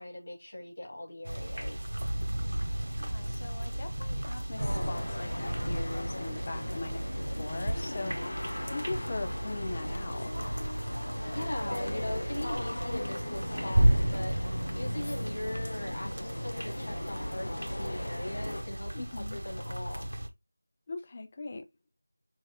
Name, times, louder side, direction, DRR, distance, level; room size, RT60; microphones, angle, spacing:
voice 1, 0.0-1.8 11.3-19.0 19.3-20.1, left 1 dB, 35° left, 2.3 m, -40 dB
sound 1, 1.2-20.3, right 1 dB, 75° right, 1.3 m, -33 dB
voice 2, 2.9-8.4 8.7-10.3 18.9-19.4 20.9-21.7, left 3 dB, 15° left, 0.4 m, -40 dB
sound 2, 4.6-18.6, left 1 dB, 55° left, 1.1 m, -39 dB
6.1 x 3.3 x 2.2 m
figure-of-eight pair, 180°, 0 cm